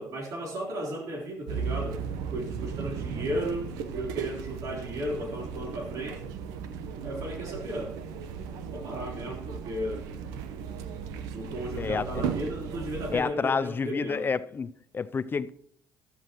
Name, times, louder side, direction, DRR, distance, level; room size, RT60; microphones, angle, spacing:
voice 1, 0.0-2.0 2.3-6.2 7.0-8.0 8.7-10.1 11.3-14.3, right 1 dB, 65° right, 3.5 m, -35 dB
sound 1, 1.5-13.2, right 6 dB, 85° right, 0.9 m, -36 dB
voice 2, 11.8-12.3 13.1-15.5, left 5 dB, 35° left, 0.5 m, -29 dB
13.5 x 13.0 x 3.0 m
supercardioid pair, 75°, 6 cm